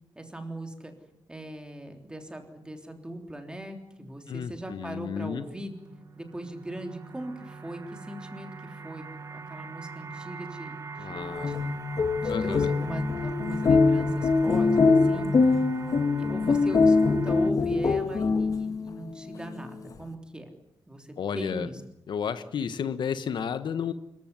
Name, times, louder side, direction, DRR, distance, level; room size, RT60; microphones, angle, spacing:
voice 1, 0.2-0.9 1.3-5.8 6.2-9.0 9.3-11.8 12.2-15.6 16.2-20.5 20.9-21.8, right 1 dB, 10° right, 5 dB, 3.5 m, -40 dB
voice 2, 4.3-5.4 11.0-11.6 12.3-12.7 21.2-21.7 22.1-23.9, left 7 dB, 65° left, 11 dB, 1.3 m, -32 dB
sound 1, 5.5-17.5, right 4 dB, 35° right, 1.5 m, -41 dB
sound 2, 11.3-18.9, left 4 dB, 45° left, 1.7 m, -23 dB
25.5 x 15.0 x 9.7 m, 0.82 s
cardioid pair, 120°, 9 cm